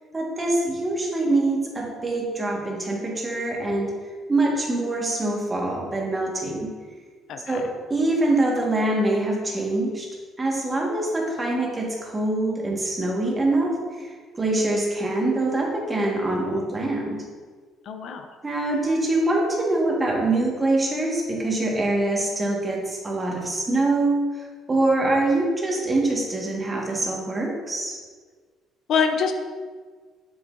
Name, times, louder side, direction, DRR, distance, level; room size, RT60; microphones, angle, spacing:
voice 1, 0.1-3.9 4.3-6.7 7.5-7.7 7.9-10.1 10.4-17.2 18.4-28.0, right 2 dB, 20° right, -2 dB, 1.6 m, -24 dB
voice 2, 7.3-7.6 17.9-18.3 28.9-29.3, left 6 dB, 65° left, 6 dB, 0.6 m, -24 dB
7.1 x 7.0 x 2.6 m, 1.5 s
cardioid pair, 105°, 0 cm